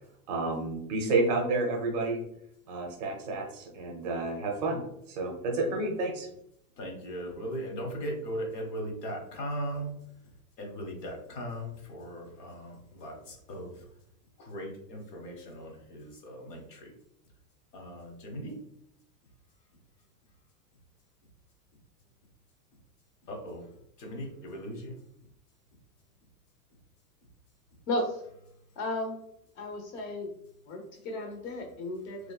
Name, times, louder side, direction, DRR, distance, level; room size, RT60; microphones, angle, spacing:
voice 1, 0.3-2.2 2.7-4.8 5.1-6.3, right 3 dB, 30° right, 1 dB, 0.5 m, -30 dB
voice 2, 6.8-10.0 10.6-13.8 14.4-16.9 17.7-18.6 23.3-23.7 24.0-25.0, equal, 85° left, 2 dB, 1.3 m, -38 dB
voice 3, 27.9-28.2 28.8-29.2 29.6-30.3 30.7-32.3, left 1 dB, 45° left, 3 dB, 0.9 m, -34 dB
3.1 x 2.9 x 2.2 m, 0.76 s
supercardioid pair, 155°, 48 cm